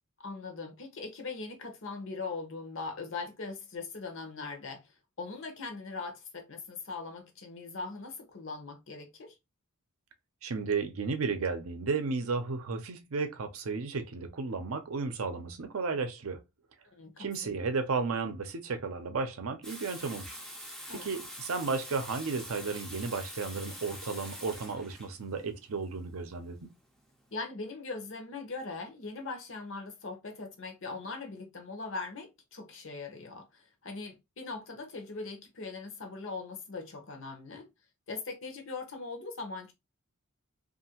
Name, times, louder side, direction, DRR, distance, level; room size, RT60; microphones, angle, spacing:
voice 1, 0.2-9.3 16.9-17.5 20.9-21.1 27.3-37.7 38.1-39.7, left 3 dB, 60° left, 0.8 m, -40 dB
voice 2, 10.4-16.4 17.2-20.4 20.9-26.6, right 4 dB, 70° right, 0.6 m, -33 dB
Water tap faucet / Sink (filling or washing), 19.6-27.3, equal, ahead, 0.4 m, -45 dB
2.7 x 2.5 x 2.8 m
head